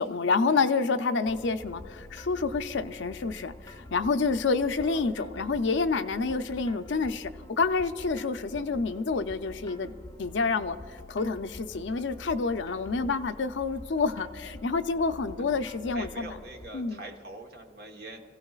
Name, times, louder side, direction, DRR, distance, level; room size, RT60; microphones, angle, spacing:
voice 1, 0.0-7.3 7.6-9.9 10.2-16.4 16.7-17.0, left 4 dB, 75° left, 9 dB, 0.5 m, -28 dB
sound 1, 1.3-16.7, left 1 dB, 20° left, 0.6 m, -47 dB
voice 2, 15.9-18.2, right 2 dB, 55° right, 2 dB, 1.2 m, -43 dB
27.0 x 15.5 x 2.4 m, 2.1 s
head